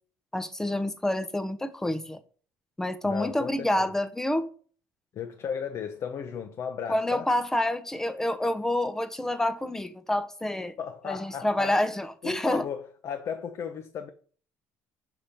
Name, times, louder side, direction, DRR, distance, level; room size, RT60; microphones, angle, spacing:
voice 1, 0.3-2.2 2.8-4.5 6.9-10.8 11.0-12.6, left 1 dB, 5° left, 0.6 m, -28 dB
voice 2, 3.0-3.9 5.1-7.3 10.8-11.8 12.2-14.1, left 7 dB, 50° left, 0.6 m, -35 dB
6.9 x 2.9 x 5.1 m
cardioid pair, 110°, 7 cm